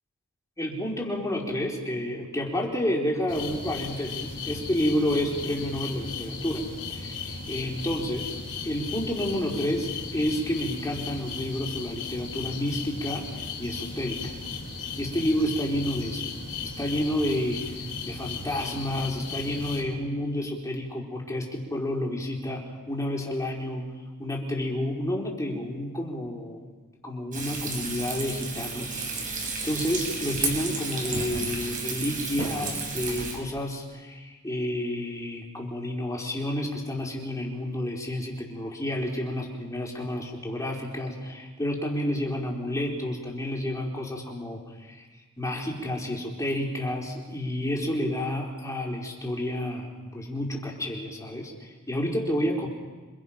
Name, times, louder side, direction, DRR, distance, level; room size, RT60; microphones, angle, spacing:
voice 1, 0.6-13.3 13.6-14.3 15.0-16.3 16.6-17.8 18.0-23.9 24.2-26.6 27.0-45.1 45.4-52.7, left 1 dB, 15° left, -1 dB, 4.3 m, -30 dB
sound 1, 3.3-19.8, left 4 dB, 55° left, 5.2 m, -36 dB
Frying (food), 27.3-33.4, right 4 dB, 40° right, 6.0 m, -32 dB
28.5 x 26.0 x 5.9 m, 1.3 s
head